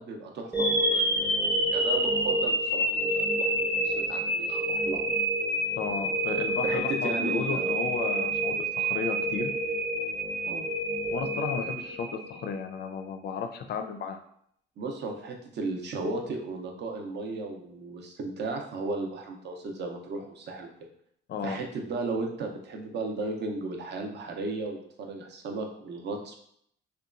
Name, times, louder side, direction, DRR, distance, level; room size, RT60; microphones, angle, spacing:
voice 1, 0.0-5.0 6.6-7.7 10.5-10.7 14.8-20.7 21.4-26.4, right 3 dB, 60° right, 3 dB, 0.6 m, -35 dB
sound 1, 0.5-12.6, right 1 dB, 10° right, 0.7 m, -28 dB
voice 2, 5.8-9.5 11.1-14.2 21.3-21.6, left 6 dB, 55° left, 7 dB, 0.4 m, -33 dB
2.9 x 2.2 x 2.4 m, 0.69 s
cardioid pair, 90°, 20 cm